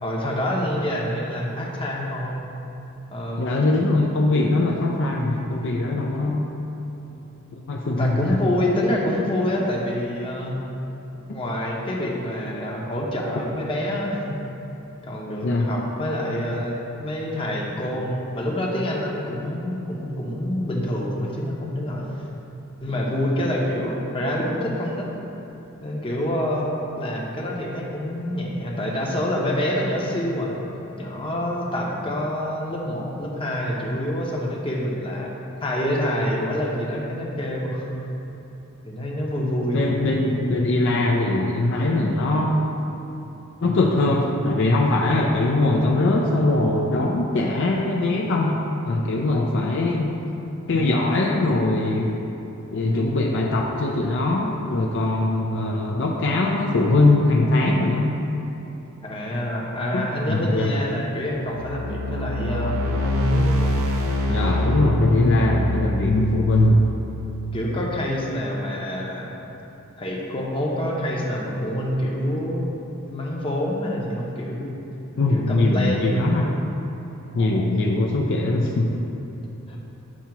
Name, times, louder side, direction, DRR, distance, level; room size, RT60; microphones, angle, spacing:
voice 1, 0.0-2.4 3.1-3.5 8.0-10.7 11.1-14.4 15.0-22.1 22.8-25.1 25.8-30.6 30.9-35.3 35.6-38.1 38.8-39.9 59.0-63.8 67.5-69.3 70.0-72.7 73.0-74.7 75.3-76.1 77.7-78.1 79.7-79.8, left 1 dB, 25° left, -3 dB, 0.8 m, -27 dB
voice 2, 3.4-6.5 7.5-8.4 15.4-15.8 39.7-42.8 43.6-48.6 48.9-50.2 50.7-52.1 52.7-58.1 59.9-60.7 64.3-66.9 75.2-76.5 77.3-79.0, left 2 dB, 60° left, -1 dB, 0.5 m, -21 dB
sound 1, 61.3-67.5, left 1 dB, 80° right, 0.7 m, -26 dB
7.3 x 2.8 x 5.7 m, 3.0 s
head